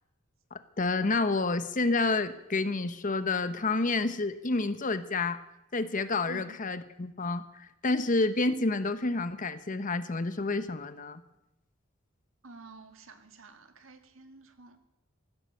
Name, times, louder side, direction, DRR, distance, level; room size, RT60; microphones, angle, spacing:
voice 1, 0.5-5.4 5.7-11.2, left 3 dB, 40° left, 12 dB, 0.9 m, -29 dB
voice 2, 12.4-14.8, right 3 dB, 85° right, 8 dB, 1.7 m, -50 dB
15.5 x 12.0 x 6.6 m, 0.91 s
head